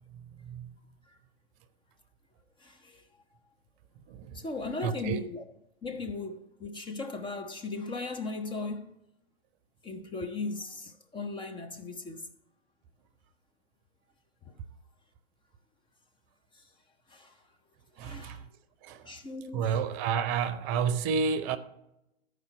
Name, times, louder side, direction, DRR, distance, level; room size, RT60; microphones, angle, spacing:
voice 1, 0.1-0.7 4.1-4.5 4.8-5.2 18.0-18.5 18.8-19.1 19.5-21.6, right 6 dB, 40° right, 0.8 m, -31 dB
voice 2, 2.6-3.0 4.3-5.4 5.8-9.0 9.8-12.3 14.5-14.6 16.5-16.7 17.1-17.4 18.0-18.4 18.9-19.7, left 3 dB, 15° left, 0.6 m, -37 dB
14.0 x 5.0 x 4.3 m
hypercardioid pair, 115°, 30 cm